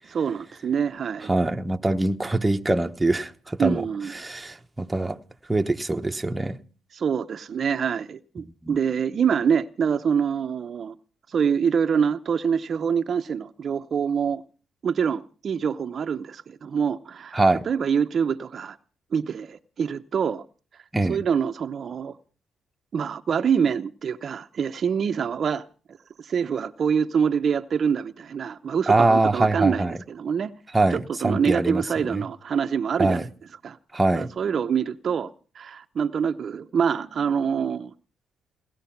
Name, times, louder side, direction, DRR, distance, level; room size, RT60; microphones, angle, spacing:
voice 1, 0.1-1.3 3.6-4.1 6.9-10.9 11.3-14.4 14.8-17.4 17.7-18.8 19.1-20.4 20.7-20.8 21.1-22.2 22.9-25.7 26.2-30.5 30.9-33.2 33.6-33.8 34.1-37.9, right 7 dB, 50° right, 0.7 m, -25 dB
voice 2, 1.3-3.9 4.1-5.2 5.5-6.6 8.6-8.8 17.3-17.6 20.9-21.2 28.9-29.9 30.7-31.8 32.1-32.2 33.0-33.3 33.9-34.3, right 2 dB, 15° right, 1.0 m, -23 dB
18.5 x 13.5 x 5.9 m
cardioid pair, 90°, 0 cm